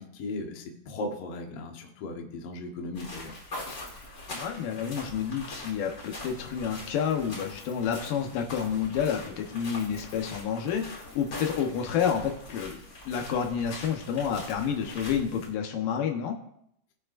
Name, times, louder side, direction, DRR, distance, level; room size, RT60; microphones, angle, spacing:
voice 1, 0.0-3.4, left 2 dB, 90° left, 1 dB, 1.3 m, -37 dB
sound 1, 2.9-15.5, left 2 dB, 30° left, 2.8 m, -43 dB
voice 2, 4.3-12.8 13.1-16.4, left 7 dB, 70° left, 3 dB, 2.3 m, -29 dB
20.5 x 7.2 x 2.5 m, 0.73 s
omnidirectional pair, 4.8 m